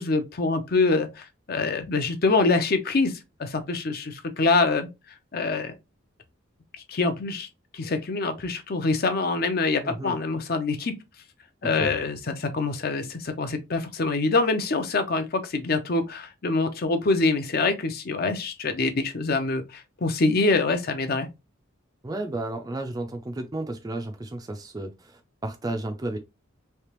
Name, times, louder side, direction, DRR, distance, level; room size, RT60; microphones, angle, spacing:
voice 1, 0.0-3.1 3.4-4.9 5.3-5.7 6.9-7.5 7.7-10.9 11.6-21.3, left 3 dB, 50° left, 0.6 m, -25 dB
voice 2, 9.8-10.2 11.7-11.9 22.0-26.2, right 2 dB, 20° right, 0.4 m, -33 dB
3.3 x 2.8 x 2.9 m
head